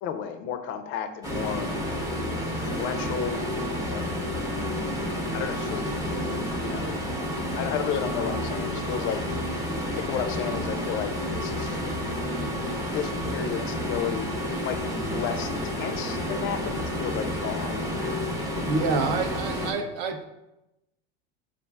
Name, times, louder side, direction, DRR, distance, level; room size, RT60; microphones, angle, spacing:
voice 1, 0.0-1.7 2.4-3.4 3.9-4.3 5.3-6.0 6.6-7.0 7.5-9.2 9.9-11.8 12.9-14.3 14.6-18.2, left 8 dB, 45° left, 9 dB, 0.4 m, -33 dB
sound 1, 1.2-19.7, left 1 dB, 10° right, 0.7 m, -30 dB
voice 2, 18.6-20.2, right 4 dB, 60° right, 6 dB, 0.6 m, -27 dB
7.0 x 2.5 x 2.3 m, 0.93 s
supercardioid pair, 130°, 30 cm